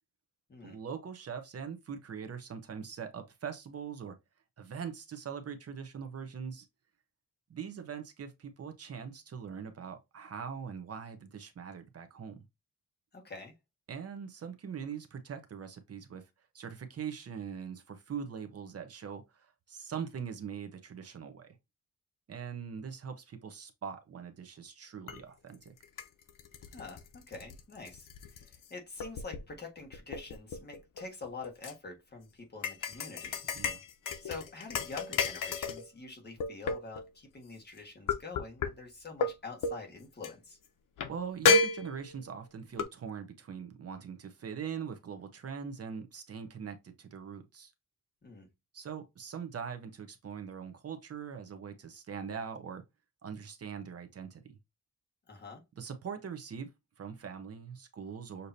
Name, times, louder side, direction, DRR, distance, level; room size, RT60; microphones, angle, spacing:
voice 1, 0.6-4.2 4.6-6.7 7.5-12.4 13.9-16.3 16.5-21.6 22.3-25.7 33.5-33.8 41.1-47.7 48.7-52.8 53.2-54.4 55.8-56.7 57.0-58.5, right 7 dB, 50° right, 0.7 m, -42 dB
voice 2, 13.1-13.5 26.7-33.4 34.2-40.6 48.2-48.5 55.3-55.6, left 3 dB, 30° left, 1.5 m, -46 dB
sound 1, 25.1-25.2 25.6-28.7 29.0-29.5 29.9-31.7 32.6-35.9 36.4-37.1 38.1-38.7 39.2-39.3 39.6-39.8 40.2-40.3 41.0-41.1 41.4-42.3 42.8-42.9, left 4 dB, 80° left, 0.7 m, -31 dB
6.6 x 2.8 x 2.7 m
wide cardioid pair, 155°, 32 cm